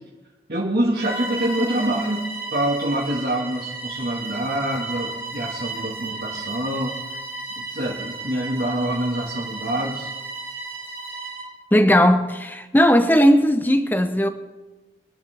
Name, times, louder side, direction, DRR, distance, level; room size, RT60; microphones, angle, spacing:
voice 1, 0.5-6.9 7.5-10.1, right 1 dB, 55° right, 1.8 m, -26 dB
Bowed string instrument, 0.9-11.5, right 3 dB, 15° right, 2.8 m, -34 dB
voice 2, 11.7-14.3, equal, 10° left, 0.7 m, -17 dB
24.5 x 11.0 x 3.4 m
head